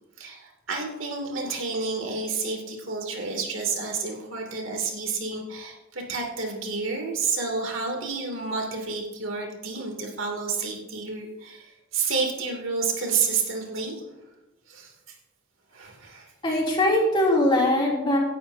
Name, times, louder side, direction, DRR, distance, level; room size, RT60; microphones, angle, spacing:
voice 1, 0.2-13.9 14.7-14.9 15.7-16.3, right 4 dB, 70° right, 1 dB, 2.7 m, -30 dB
voice 2, 16.4-18.2, left 1 dB, 25° left, -3 dB, 3.0 m, -21 dB
18.0 x 11.5 x 2.8 m, 1.0 s
head